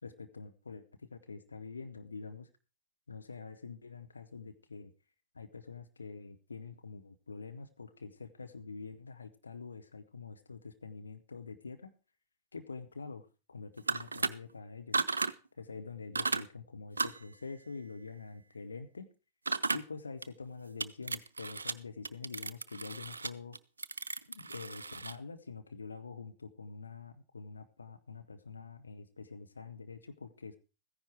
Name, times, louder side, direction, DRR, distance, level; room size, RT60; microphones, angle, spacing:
voice 1, 0.0-2.5 3.1-4.9 5.3-11.9 12.5-15.0 15.6-19.1 19.7-23.6 24.3-30.6, left 4 dB, 75° left, 9 dB, 1.1 m, -46 dB
sound 1, 13.8-14.3 14.9-15.3 16.1-16.4 17.0-17.2 19.5-19.8 20.2-20.3 20.8-21.7 22.0-25.2, right 3 dB, 75° right, 0.5 m, -34 dB
14.5 x 10.0 x 4.8 m, 0.33 s
figure-of-eight pair, 90°, 0 cm